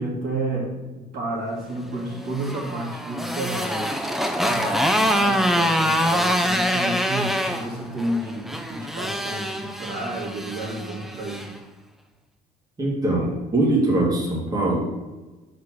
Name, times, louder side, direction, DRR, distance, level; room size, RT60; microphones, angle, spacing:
voice 1, 0.0-11.4, right 1 dB, 55° right, -3 dB, 2.3 m, -31 dB
Motorcycle, 2.1-11.5, equal, ahead, 0.6 m, -25 dB
voice 2, 12.8-14.8, right 2 dB, 20° right, -4 dB, 1.9 m, -22 dB
5.3 x 4.3 x 6.0 m, 1.1 s
cardioid pair, 110°, 17 cm